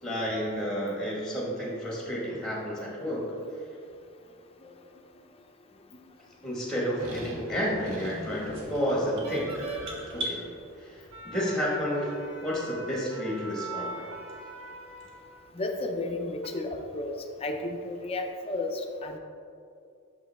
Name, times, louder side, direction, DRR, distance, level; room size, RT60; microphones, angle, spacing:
voice 1, 0.0-3.3 6.4-9.7 10.1-10.5 10.8-12.1 12.4-14.1, equal, 5° left, -4 dB, 1.5 m, -31 dB
sound 1, 7.0-15.4 16.2-16.5, right 3 dB, 90° right, 0.9 m, -42 dB
sound 2, 8.5-10.4, right 1 dB, 60° right, 1.1 m, -38 dB
voice 2, 15.5-17.2 17.4-19.2, left 2 dB, 25° left, 4 dB, 0.5 m, -33 dB
6.4 x 5.3 x 3.4 m, 2.5 s
head